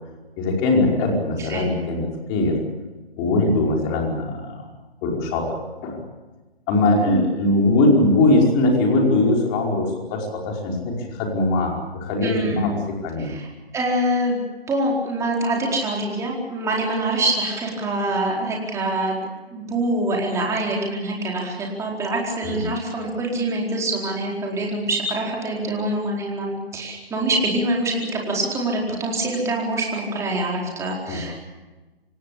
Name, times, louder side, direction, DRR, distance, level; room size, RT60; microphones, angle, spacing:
voice 1, 0.4-2.6 3.2-4.6 5.0-5.6 5.8-6.0 6.7-12.8 13.0-13.3 22.4-22.6 31.1-31.2, left 2 dB, 25° left, 0 dB, 5.1 m, -21 dB
voice 2, 12.2-12.7 13.2-13.5 13.7-14.4 14.7-19.2 19.5-31.5, right 1 dB, 10° right, -1 dB, 4.4 m, -25 dB
26.5 x 17.5 x 8.6 m, 1.2 s
figure-of-eight pair, 140°, 31 cm